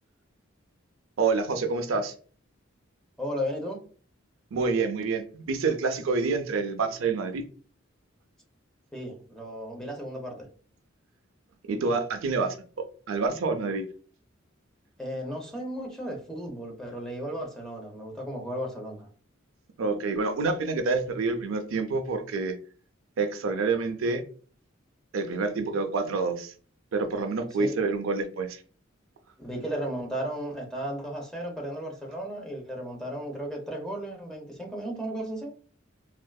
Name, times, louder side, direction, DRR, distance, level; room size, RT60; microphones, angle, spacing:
voice 1, 1.2-2.1 4.5-7.4 11.7-13.8 19.8-22.6 23.2-24.2 25.1-26.5 26.9-28.6, right 4 dB, 75° right, 0.4 m, -27 dB
voice 2, 3.2-3.8 8.9-10.5 15.0-19.1 27.6-27.7 29.4-35.5, equal, 5° left, 0.7 m, -35 dB
3.5 x 2.4 x 2.2 m
head